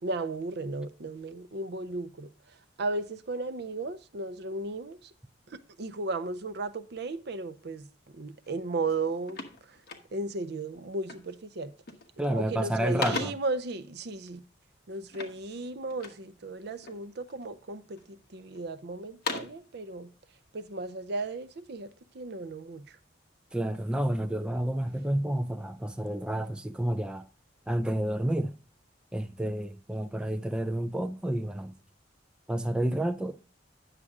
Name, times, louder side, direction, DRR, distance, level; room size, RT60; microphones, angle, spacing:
voice 1, 0.0-5.1 5.5-9.8 10.1-11.7 12.3-14.4 14.9-20.1 20.5-23.0, right 3 dB, 60° right, 0.6 m, -35 dB
sound 1, 8.4-8.6 8.9-10.4 11.1-11.4 11.7-12.2 12.6-13.6 15.1-16.3 16.8-17.5 18.0-18.6 19.0-19.7, left 4 dB, 55° left, 1.2 m, -39 dB
voice 2, 12.2-13.3 23.5-27.3 27.7-28.5 29.1-31.7 32.5-33.4, right 1 dB, 5° right, 0.3 m, -30 dB
9.9 x 6.6 x 3.6 m
head